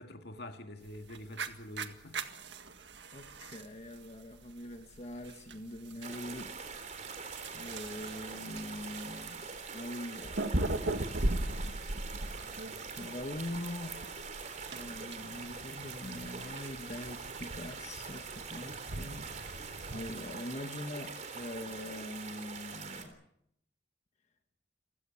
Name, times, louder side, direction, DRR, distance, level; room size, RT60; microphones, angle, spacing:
voice 1, 0.0-2.2, left 1 dB, 60° left, 2.1 m, -46 dB
sound 1, 0.9-20.2, right 2 dB, 70° right, 1.8 m, -40 dB
voice 2, 3.1-7.2 7.5-10.7 12.9-14.0 14.7-19.6 19.9-23.1, left 1 dB, 40° left, 1.4 m, -43 dB
sound 2, 6.0-23.0, right 5 dB, 40° right, 3.7 m, -44 dB
29.0 x 16.5 x 7.1 m
head